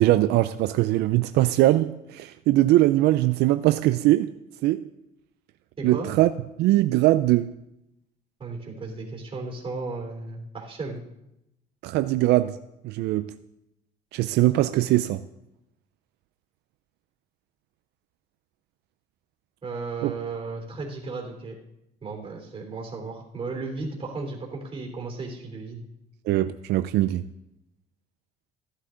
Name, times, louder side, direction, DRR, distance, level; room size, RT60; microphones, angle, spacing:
voice 1, 0.0-4.4 4.6-4.9 5.8-6.3 6.6-7.6 11.8-12.6 12.8-13.3 14.1-15.2 20.0-20.1 26.3-27.3, right 16 dB, 80° right, 0.4 m, -21 dB
voice 2, 5.8-6.1 8.4-11.0 19.6-21.5 22.0-25.8, right 3 dB, 35° right, 3.3 m, -34 dB
15.0 x 11.0 x 3.8 m
cardioid pair, 110°, 17 cm